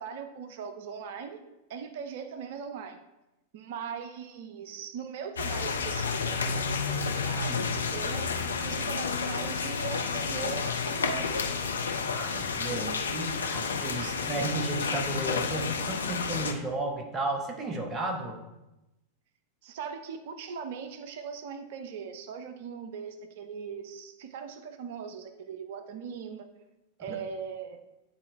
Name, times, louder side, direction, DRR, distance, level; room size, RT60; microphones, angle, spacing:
voice 1, 0.0-1.4 1.7-3.0 3.5-8.3 8.6-11.5 14.0-14.2 19.6-26.5 27.0-27.8, right 6 dB, 55° right, 8 dB, 0.5 m, -40 dB
sound 1, 5.4-16.5, left 5 dB, 70° left, 0.5 m, -31 dB
voice 2, 12.1-18.4 27.1-27.2, right 2 dB, 20° right, 2 dB, 1.1 m, -33 dB
8.9 x 4.2 x 3.2 m, 0.97 s
figure-of-eight pair, 90°, 0 cm